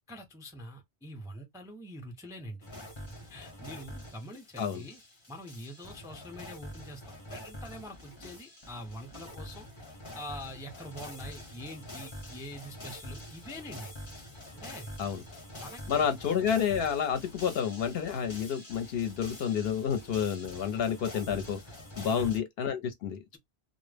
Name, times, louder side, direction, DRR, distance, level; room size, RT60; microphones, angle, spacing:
voice 1, 0.1-2.7 3.2-5.0 5.3-9.7 10.1-13.9 14.5-14.9 15.5-16.1 22.0-22.3, equal, 5° right, 0.4 m, -45 dB
sound 1, 2.6-22.4, left 1 dB, 30° left, 0.7 m, -46 dB
voice 2, 15.9-21.6 22.0-23.4, left 7 dB, 65° left, 0.7 m, -30 dB
2.1 x 2.0 x 3.2 m
omnidirectional pair, 1.2 m